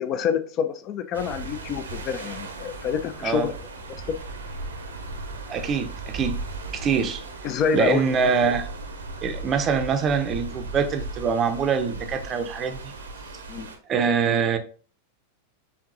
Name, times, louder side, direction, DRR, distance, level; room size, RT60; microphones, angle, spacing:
voice 1, 0.0-3.5 4.1-4.2 7.4-8.0 13.5-13.7, left 7 dB, 35° left, 0.5 m, -27 dB
sound 1, 1.1-13.8, right 2 dB, 70° right, 0.7 m, -37 dB
voice 2, 5.5-6.4 6.7-7.2 7.7-8.7 9.2-12.9 13.9-14.6, right 6 dB, 30° right, 0.6 m, -24 dB
4.6 x 3.5 x 2.5 m
figure-of-eight pair, 90°, 0 cm